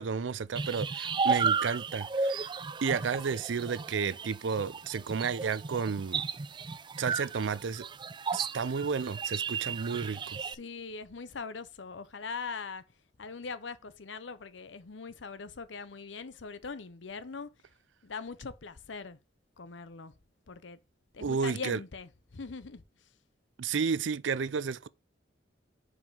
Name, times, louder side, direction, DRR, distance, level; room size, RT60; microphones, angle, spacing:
voice 1, 0.0-2.5 2.8-6.2 7.0-7.8 8.3-10.4 21.2-21.8 23.6-24.9, right 5 dB, 80° right, 0.5 m, -32 dB
sound 1, 0.6-10.6, right 5 dB, 25° right, 0.4 m, -34 dB
voice 2, 10.4-12.8 13.2-17.5 18.0-19.2 19.6-20.1 20.5-20.8 21.1-22.8, left 4 dB, 80° left, 0.8 m, -41 dB
5.5 x 4.9 x 5.5 m
head